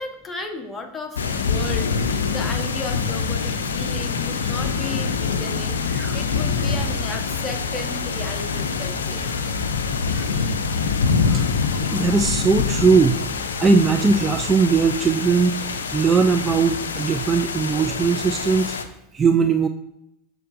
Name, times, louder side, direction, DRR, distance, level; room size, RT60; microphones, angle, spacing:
voice 1, 0.0-5.8 6.1-9.3, left 2 dB, 15° left, 3 dB, 1.0 m, -34 dB
sound 1, 1.2-18.8, left 5 dB, 70° left, 0.5 m, -25 dB
voice 2, 10.1-10.5 11.2-13.2 13.6-18.8 19.1-19.7, right 5 dB, 20° right, 7 dB, 0.3 m, -20 dB
6.4 x 6.1 x 2.5 m, 0.84 s
figure-of-eight pair, 85°, 0 cm